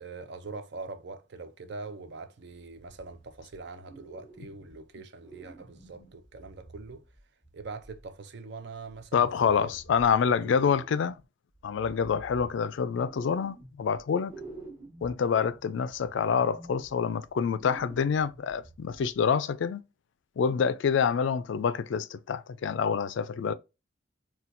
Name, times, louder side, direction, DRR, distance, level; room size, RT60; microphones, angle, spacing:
voice 1, 0.0-7.0 7.5-9.8 10.3-10.8, right 3 dB, 55° right, 0.5 m, -42 dB
sound 1, 2.9-3.6 3.9-4.9 5.2-8.1 8.9-11.2 11.6-14.0 14.3-19.2, right 2 dB, 15° right, 1.2 m, -50 dB
voice 2, 9.1-11.1 11.6-14.3 15.0-19.8 20.4-23.5, left 6 dB, 65° left, 0.3 m, -27 dB
4.2 x 2.2 x 2.5 m
head